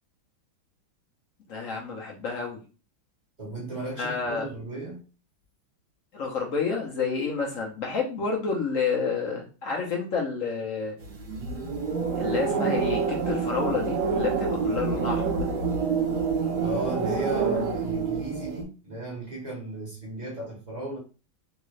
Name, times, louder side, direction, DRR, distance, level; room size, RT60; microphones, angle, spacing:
voice 1, 1.5-2.6 4.0-4.5 6.1-10.9 12.2-15.4, left 5 dB, 60° left, 0.8 m, -29 dB
voice 2, 3.4-5.0 16.6-21.0, right 2 dB, 30° right, 0.8 m, -35 dB
sound 1, 11.0-18.6, right 5 dB, 65° right, 1.5 m, -27 dB
3.6 x 2.4 x 3.1 m
omnidirectional pair, 2.2 m